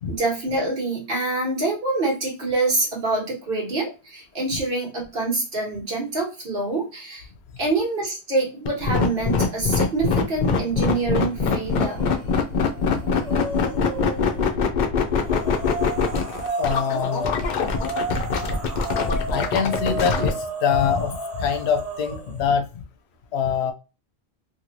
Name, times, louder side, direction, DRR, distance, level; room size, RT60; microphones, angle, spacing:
voice 1, 0.1-7.3 7.6-12.1, right 2 dB, 60° right, -2 dB, 1.3 m, -26 dB
sound 1, 8.7-20.3, left 5 dB, 55° left, 0.6 m, -23 dB
sound 2, 11.7-12.3 12.6-14.5 15.2-22.4, right 2 dB, 40° right, 0.8 m, -33 dB
voice 2, 16.6-17.3 19.3-22.7 23.3-23.7, left 7 dB, 80° left, 6 dB, 0.9 m, -24 dB
3.0 x 2.7 x 2.6 m, 0.31 s
omnidirectional pair, 1.1 m